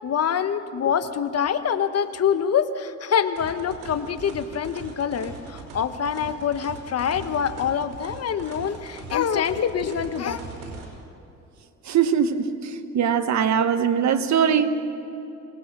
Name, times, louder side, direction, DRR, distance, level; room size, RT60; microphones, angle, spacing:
voice 1, 0.0-10.4, left 7 dB, 55° left, 10 dB, 1.3 m, -25 dB
sound 1, 3.4-10.9, right 4 dB, 85° right, 5.0 m, -40 dB
voice 2, 11.8-14.7, right 7 dB, 65° right, 9 dB, 1.5 m, -21 dB
26.0 x 19.0 x 6.2 m, 2.9 s
cardioid pair, 90°, 30 cm